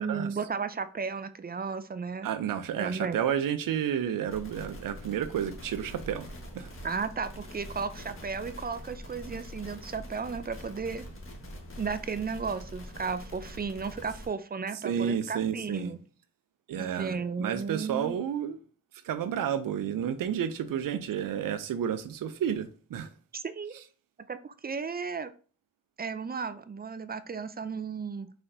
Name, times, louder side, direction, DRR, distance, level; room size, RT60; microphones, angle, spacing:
voice 1, 0.0-2.3 2.8-3.2 6.8-11.0 11.8-16.0 16.8-18.2 23.3-23.8 24.3-25.3 26.0-28.3, right 5 dB, 30° right, 0.4 m, -34 dB
voice 2, 2.2-6.7 14.8-15.9 16.7-18.6 19.0-23.1, right 9 dB, 85° right, 0.6 m, -31 dB
sound 1, 4.3-14.3, equal, 40° left, 1.5 m, -44 dB
4.3 x 4.1 x 2.7 m
cardioid pair, 60°, 32 cm